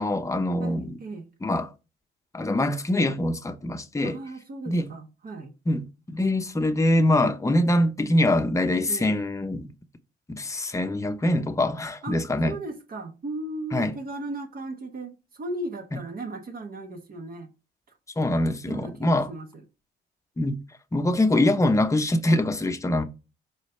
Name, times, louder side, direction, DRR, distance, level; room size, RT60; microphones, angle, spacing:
voice 1, 0.0-1.0 1.4-1.7 2.3-4.2 4.7-4.9 5.7-5.8 6.1-9.7 10.3-12.6 13.7-14.0 18.2-19.3 20.4-20.6 20.9-23.1, left 1 dB, 15° left, 0.8 m, -24 dB
voice 2, 0.6-1.3 4.0-5.5 8.9-9.1 12.0-12.2 12.4-17.5 18.6-19.6 21.0-21.2, right 2 dB, 50° right, 1.4 m, -36 dB
5.0 x 3.9 x 5.6 m
cardioid pair, 90°, 20 cm